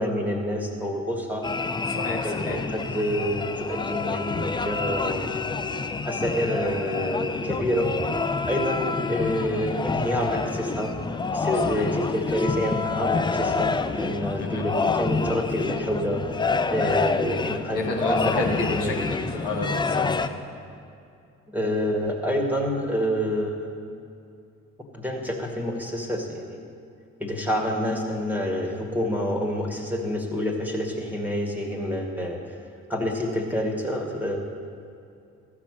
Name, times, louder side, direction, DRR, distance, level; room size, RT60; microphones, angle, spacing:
voice 1, 0.0-1.5 2.2-5.4 6.1-7.9 8.5-11.0 11.3-16.2 16.7-19.1 21.5-23.7 24.9-26.6 27.2-32.6 32.9-34.4, equal, 5° right, 1 dB, 1.8 m, -28 dB
sound 1, 1.4-20.3, left 4 dB, 10° left, 0.4 m, -27 dB
voice 2, 1.9-2.6 11.6-11.9 12.6-12.7 14.4-14.6 17.7-20.4, left 2 dB, 70° left, -1 dB, 1.6 m, -31 dB
14.0 x 6.1 x 7.5 m, 2.5 s
figure-of-eight pair, 45°, 39 cm